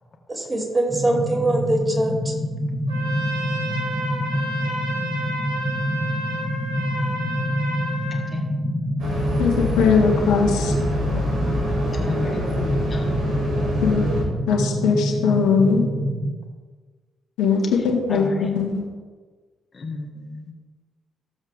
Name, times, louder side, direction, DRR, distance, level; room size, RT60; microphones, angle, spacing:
voice 1, 0.3-2.3, right 2 dB, 25° right, -2 dB, 3.1 m, -22 dB
sound 1, 0.9-16.3, equal, 5° left, 1.6 m, -27 dB
Trumpet, 2.9-8.3, right 1 dB, 85° right, 1.2 m, -31 dB
voice 2, 8.1-8.4 12.0-12.4 12.9-13.4 18.1-18.5 19.7-20.5, left 2 dB, 40° left, 0 dB, 1.3 m, -33 dB
sound 2, 9.0-14.2, equal, 65° right, 2.5 m, -25 dB
voice 3, 9.4-10.7 13.8-14.0 14.5-15.9 17.4-18.9, left 5 dB, 70° left, -2 dB, 1.6 m, -20 dB
15.0 x 7.2 x 2.6 m, 1.4 s
figure-of-eight pair, 40°, 0 cm